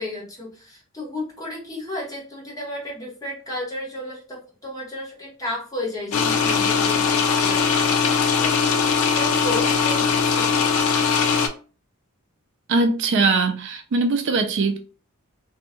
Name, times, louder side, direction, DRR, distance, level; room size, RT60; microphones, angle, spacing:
voice 1, 0.0-8.1 8.4-10.6, left 1 dB, 15° left, 1.0 m, -33 dB
sound 1, 6.1-11.5, left 6 dB, 90° left, 0.4 m, -20 dB
voice 2, 12.7-14.8, right 3 dB, 60° right, 0.4 m, -21 dB
2.7 x 2.2 x 2.7 m
head